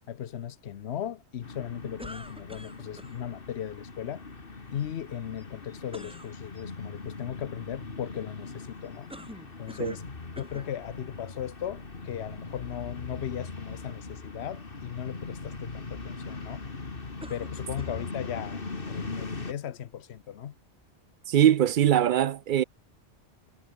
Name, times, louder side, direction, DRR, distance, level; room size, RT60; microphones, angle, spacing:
voice 1, 0.1-4.3 4.7-9.1 9.6-10.0 10.4-16.6 17.3-20.5, left 10 dB, 70° left, 1.0 m, -37 dB
sound 1, 1.4-19.5, left 3 dB, 50° left, 2.3 m, -40 dB
sound 2, 2.0-3.2 5.9-6.3 9.1-10.1 10.4-10.7 11.5-11.6 17.2-18.1, equal, 5° right, 3.7 m, -45 dB
voice 2, 21.3-22.6, right 10 dB, 60° right, 0.6 m, -22 dB
omnidirectional pair, 1.2 m